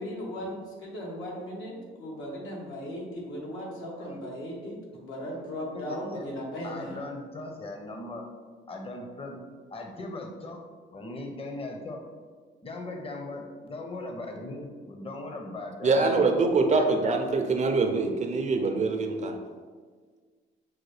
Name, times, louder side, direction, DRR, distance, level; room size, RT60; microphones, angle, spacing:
voice 1, 0.0-7.0, equal, 85° left, -3 dB, 1.2 m, -37 dB
voice 2, 5.7-6.2 6.6-8.2 8.7-9.4 9.7-10.6 10.9-12.0 12.6-16.3 16.8-17.1, left 2 dB, 30° left, 2 dB, 0.7 m, -39 dB
voice 3, 15.8-19.4, right 3 dB, 35° right, 4 dB, 0.5 m, -24 dB
6.1 x 2.2 x 3.2 m, 1.5 s
cardioid pair, 90°, 20 cm